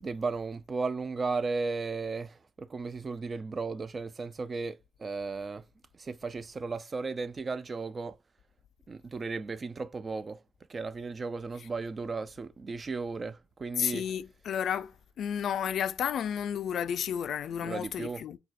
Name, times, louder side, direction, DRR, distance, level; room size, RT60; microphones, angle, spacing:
voice 1, 0.0-5.6 5.9-8.2 8.9-10.4 10.7-14.1 17.5-18.2, right 4 dB, 35° right, 0.3 m, -35 dB
voice 2, 13.8-14.9 15.2-18.4, left 8 dB, 65° left, 0.3 m, -32 dB
4.0 x 2.2 x 2.5 m
cardioid pair, 90°, 0 cm